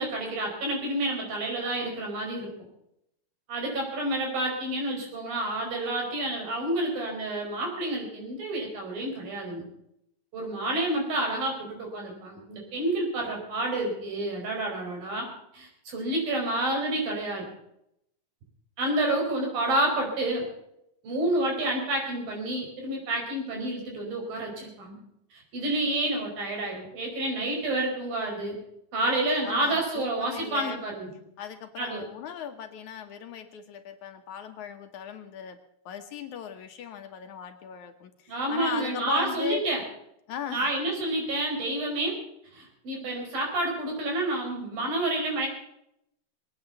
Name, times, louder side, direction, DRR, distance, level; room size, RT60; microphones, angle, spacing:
voice 1, 0.0-2.5 3.5-9.7 10.3-15.3 15.5-17.5 18.8-20.4 21.0-25.0 25.3-28.6 28.9-31.1 31.8-32.1 38.3-39.8 40.5-42.2 42.5-45.5, right 1 dB, 85° right, 1 dB, 6.6 m, -29 dB
voice 2, 29.4-30.8 31.4-35.6 35.9-39.6 40.3-40.7, left 8 dB, 65° left, 6 dB, 2.3 m, -38 dB
21.5 x 9.2 x 6.9 m, 0.78 s
omnidirectional pair, 4.0 m